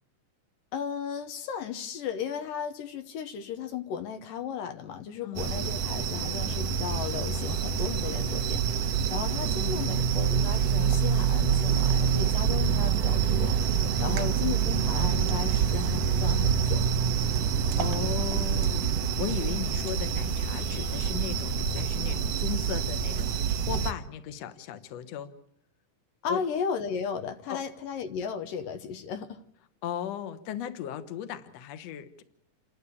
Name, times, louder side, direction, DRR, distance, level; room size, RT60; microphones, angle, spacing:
voice 1, 0.7-16.9 26.2-29.4, left 7 dB, 80° left, 8 dB, 2.7 m, -35 dB
sound 1, 5.4-23.9, right 7 dB, 70° right, 1.6 m, -26 dB
voice 2, 9.6-9.9 14.1-14.4 17.8-25.3 26.3-26.4 27.5-27.6 29.8-32.2, left 10 dB, 60° left, 11 dB, 2.0 m, -37 dB
28.5 x 12.0 x 8.5 m, 0.74 s
omnidirectional pair, 3.9 m